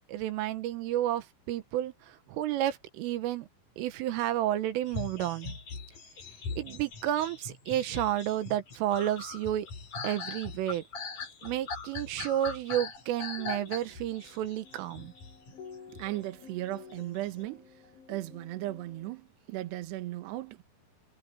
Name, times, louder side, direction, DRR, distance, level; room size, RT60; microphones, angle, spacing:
voice 1, 0.1-3.5 3.8-5.5 6.6-9.7 10.0-10.8 11.4-15.1, right 12 dB, 85° right, 3.8 m, -31 dB
sound 1, 4.9-16.2 16.9-17.3, left 4 dB, 40° left, 5.5 m, -41 dB
sound 2, 13.2-19.1, left 6 dB, 75° left, 6.9 m, -52 dB
voice 2, 15.9-17.8 18.1-20.6, right 16 dB, 65° right, 3.3 m, -37 dB
omnidirectional pair, 5.7 m